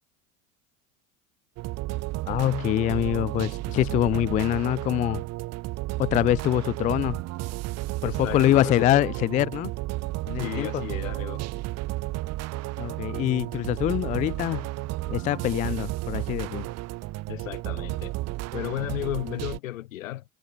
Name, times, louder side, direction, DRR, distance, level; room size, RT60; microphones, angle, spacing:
sound 1, 1.6-19.6, right 18 dB, 40° right, 1.0 m, -32 dB
voice 1, 2.3-5.2 6.0-7.2 8.0-9.7 10.3-10.8 12.8-14.7 15.1-16.7, left 13 dB, 20° left, 0.4 m, -24 dB
voice 2, 8.0-9.1 10.4-11.4 17.3-18.1 18.5-20.2, left 14 dB, 70° left, 1.2 m, -34 dB
figure-of-eight pair, 75°, 41 cm